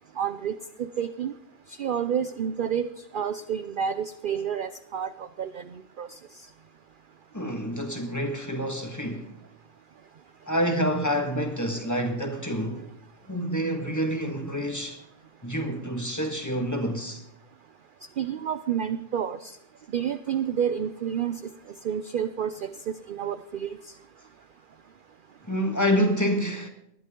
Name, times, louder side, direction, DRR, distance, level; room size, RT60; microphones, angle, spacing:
voice 1, 0.2-1.3 1.7-2.9 3.1-6.2 18.2-19.6 19.9-21.5 21.8-23.8, right 8 dB, 55° right, 0.6 m, -30 dB
voice 2, 7.3-9.3 10.5-12.9 13.3-15.0 15.4-17.2 25.4-26.7, equal, 15° left, 1.6 m, -27 dB
20.0 x 11.0 x 3.8 m
omnidirectional pair, 1.3 m